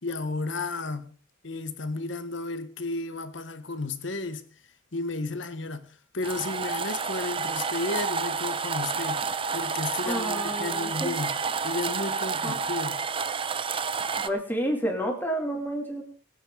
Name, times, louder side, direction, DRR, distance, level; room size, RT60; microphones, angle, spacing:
voice 1, 0.0-1.1 1.4-4.4 4.9-5.9 6.1-9.2 9.5-11.4 11.6-13.0, left 3 dB, 65° left, 1.4 m, -33 dB
sound 1, 6.2-14.3, right 5 dB, 25° right, 0.6 m, -30 dB
voice 2, 10.0-11.2 12.4-12.6 14.1-16.0, right 1 dB, 10° left, 2.9 m, -30 dB
22.5 x 9.1 x 4.0 m
head